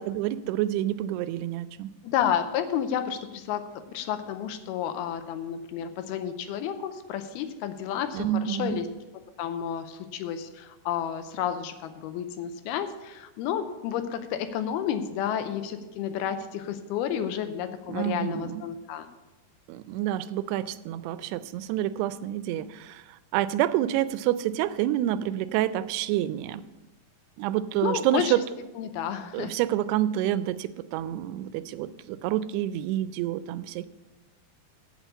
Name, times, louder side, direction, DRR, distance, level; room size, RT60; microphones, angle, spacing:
voice 1, 0.1-1.9 8.1-8.8 17.9-18.6 19.7-23.0 23.3-26.6 27.4-28.4 29.3-33.9, right 13 dB, 90° right, 15 dB, 2.6 m, -28 dB
voice 2, 2.0-8.9 9.4-19.1 27.8-28.3 28.8-29.5, left 9 dB, 80° left, 9 dB, 2.5 m, -31 dB
8.3 x 7.8 x 7.0 m, 1.1 s
omnidirectional pair, 4.6 m